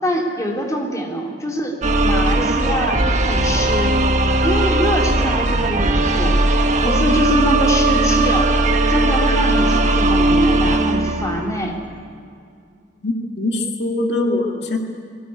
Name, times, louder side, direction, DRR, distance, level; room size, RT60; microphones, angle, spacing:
voice 1, 0.0-4.0 4.4-6.4 6.8-8.5 8.9-11.8, equal, 20° left, 0 dB, 3.4 m, -24 dB
sound 1, 1.8-11.8, right 2 dB, 45° right, 1.5 m, -18 dB
voice 2, 13.0-14.8, left 2 dB, 75° left, 2 dB, 2.2 m, -22 dB
22.5 x 18.5 x 9.6 m, 2.2 s
head